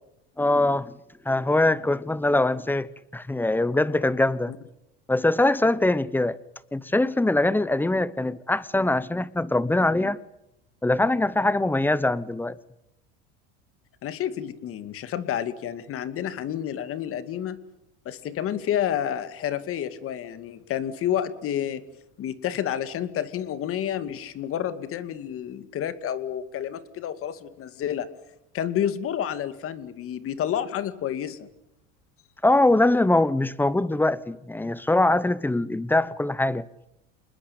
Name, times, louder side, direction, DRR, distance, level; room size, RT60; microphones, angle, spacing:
voice 1, 0.4-0.9 1.2-4.5 5.1-6.4 6.7-10.2 10.8-12.6 32.4-36.6, left 2 dB, 5° left, 1.0 m, -22 dB
voice 2, 14.0-17.6 18.1-21.8 22.2-28.1 28.5-31.5, left 10 dB, 45° left, 2.4 m, -29 dB
27.5 x 20.5 x 8.9 m
supercardioid pair, 125°, 31 cm